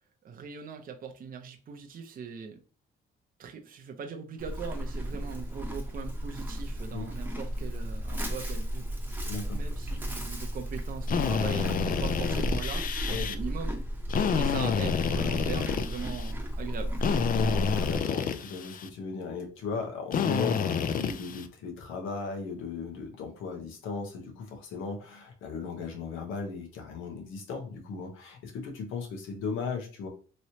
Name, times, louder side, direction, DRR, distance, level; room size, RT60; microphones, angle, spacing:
voice 1, 0.2-2.6 3.4-8.8 9.5-13.8 14.3-16.9, right 6 dB, 45° right, 0.6 m, -40 dB
Livestock farm animals working animals, 4.4-18.0, equal, 10° right, 0.8 m, -34 dB
voice 2, 9.2-9.6 13.1-13.3 17.3-30.1, left 4 dB, 90° left, 0.9 m, -37 dB
Drill, 11.1-13.4 14.1-16.3 17.0-18.9 20.1-21.5, left 7 dB, 45° left, 0.4 m, -29 dB
3.1 x 3.0 x 2.8 m
cardioid pair, 90°, 20 cm